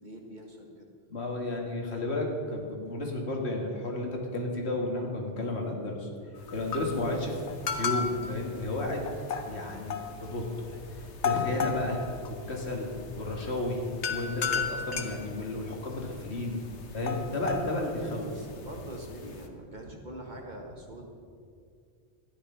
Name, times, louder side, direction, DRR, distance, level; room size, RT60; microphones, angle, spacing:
voice 1, 0.0-0.9 14.4-14.7 18.3-21.1, right 1 dB, 40° right, 1 dB, 1.7 m, -44 dB
voice 2, 1.1-6.1 6.5-9.0 9.5-12.0 12.5-12.9 13.2-13.8 14.1-16.6 16.9-18.4, left 2 dB, 70° left, 0 dB, 2.1 m, -32 dB
sound 1, 6.4-19.5, left 6 dB, 85° left, 1.3 m, -36 dB
13.5 x 10.0 x 5.6 m, 2.3 s
omnidirectional pair, 1.1 m